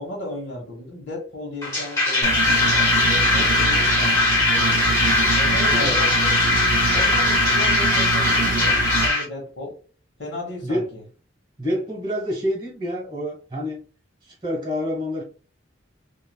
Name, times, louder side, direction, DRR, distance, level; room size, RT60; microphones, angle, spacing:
voice 1, 0.0-4.2 4.5-5.0 5.3-6.3 6.9-9.8 10.2-11.0, left 1 dB, 80° left, 1.0 m, -34 dB
sound 1, 1.6-9.2, left 2 dB, 15° left, 0.9 m, -20 dB
sound 2, 2.2-9.1, right 5 dB, 65° right, 0.4 m, -27 dB
voice 2, 11.6-13.8 14.2-15.2, equal, 25° right, 1.1 m, -27 dB
3.1 x 2.4 x 2.2 m
head